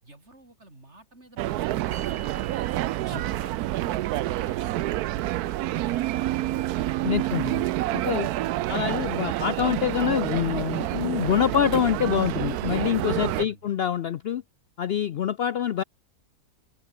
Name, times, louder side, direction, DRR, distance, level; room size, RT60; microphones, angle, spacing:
voice 1, 0.0-2.5 2.9-6.8 13.2-13.7, right 2 dB, 45° right, 6.9 m, -51 dB
sound 1, 1.4-13.4, right 15 dB, 85° right, 1.1 m, -28 dB
sound 2, 1.9-8.4, right 7 dB, 65° right, 1.8 m, -50 dB
voice 2, 7.0-7.6 7.9-8.3 8.7-14.4 14.8-15.8, left 9 dB, 70° left, 0.6 m, -25 dB
open air
omnidirectional pair, 1.6 m